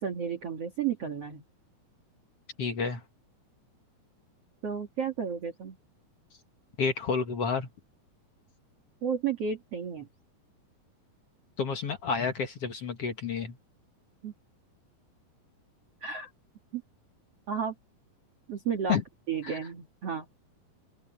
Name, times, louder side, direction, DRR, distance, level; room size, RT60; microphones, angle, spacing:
voice 1, 0.0-1.4 4.6-5.8 9.0-10.1 14.2-14.3 16.0-16.3 16.7-16.8 17.5-17.7 18.5-19.0 19.3-20.2, right 7 dB, 45° right, 2.5 m, -32 dB
voice 2, 2.6-3.0 6.8-7.7 11.6-13.6 18.9-19.0 19.4-19.6, left 5 dB, 50° left, 2.0 m, -30 dB
open air
omnidirectional pair, 4.5 m